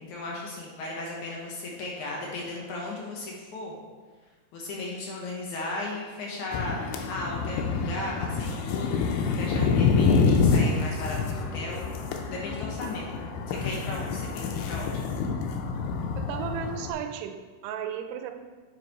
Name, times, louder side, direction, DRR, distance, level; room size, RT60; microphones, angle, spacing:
voice 1, 0.0-3.7 4.5-11.9 12.3-15.1, left 2 dB, 70° left, -3 dB, 1.9 m, -36 dB
sound 1, 6.5-16.9, left 5 dB, 85° left, 2.8 m, -27 dB
voice 2, 16.2-18.3, right 8 dB, 85° right, 7 dB, 2.7 m, -34 dB
7.7 x 5.7 x 4.0 m, 1.4 s
omnidirectional pair, 4.7 m